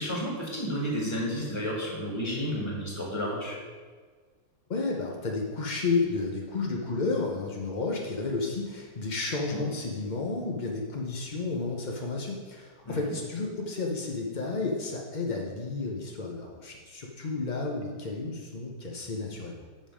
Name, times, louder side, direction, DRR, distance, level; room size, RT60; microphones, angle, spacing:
voice 1, 0.0-3.6 9.5-9.7 12.8-13.1, equal, 15° left, -3 dB, 1.6 m, -32 dB
voice 2, 4.7-19.6, left 3 dB, 75° left, 0 dB, 0.4 m, -32 dB
7.8 x 5.4 x 5.0 m, 1.5 s
omnidirectional pair, 2.1 m